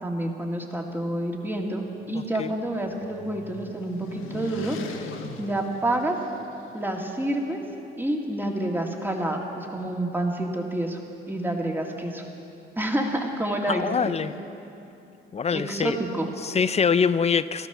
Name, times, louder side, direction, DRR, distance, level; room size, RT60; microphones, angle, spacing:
voice 1, 0.0-4.8 5.4-6.2 6.7-7.6 8.0-11.0 11.3-12.2 12.8-13.9 15.5-16.3, right 1 dB, 10° right, 1 dB, 2.1 m, -28 dB
sound 1, 2.0-6.7, left 5 dB, 85° left, 1.2 m, -41 dB
voice 2, 2.1-2.5 13.7-14.3 15.3-16.0 16.4-17.7, left 6 dB, 35° left, 14 dB, 0.5 m, -24 dB
15.5 x 13.0 x 7.0 m, 2.8 s
cardioid pair, 90°, 20 cm